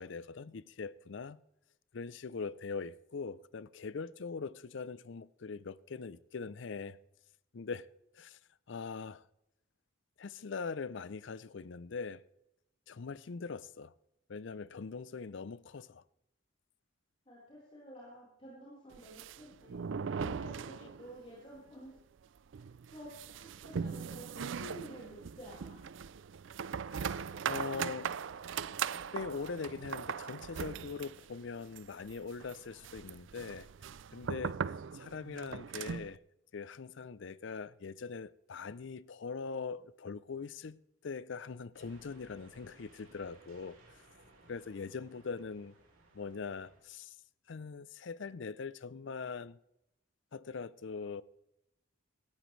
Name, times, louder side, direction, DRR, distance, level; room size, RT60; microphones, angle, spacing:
voice 1, 0.0-1.4 1.9-7.0 7.5-7.9 8.1-8.4 8.7-9.2 10.2-12.2 12.9-13.9 14.3-16.0 20.8-20.9 26.9-28.2 29.1-33.7 34.1-34.6 34.9-36.2 36.5-40.8 41.0-43.8 44.5-45.8 46.1-47.2 47.5-49.6 50.3-51.2, left 5 dB, 60° left, 0.5 m, -42 dB
voice 2, 17.3-19.7 20.1-22.0 22.9-25.8, equal, 30° left, 4.3 m, -51 dB
sound 1, 18.9-21.3 21.6-21.7 22.0-22.1 22.5-36.2, right 6 dB, 65° right, 0.4 m, -40 dB
sound 2, 41.7-46.8, right 2 dB, 85° right, 4.2 m, -62 dB
18.0 x 14.5 x 3.2 m
head